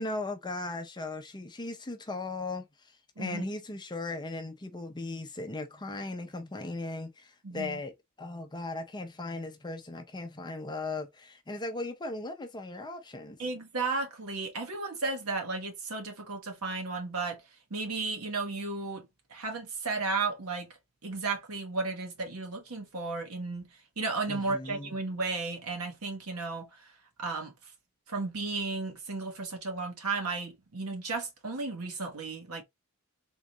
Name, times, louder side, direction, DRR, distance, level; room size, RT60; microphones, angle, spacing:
voice 1, 0.0-13.4 24.3-25.0, left 2 dB, 20° left, 0.6 m, -38 dB
voice 2, 7.4-7.8 13.4-17.4 17.7-20.7 21.0-23.7 24.0-26.9 27.2-27.5 28.1-32.6, right 3 dB, 70° right, 1.3 m, -34 dB
3.7 x 2.5 x 3.0 m
head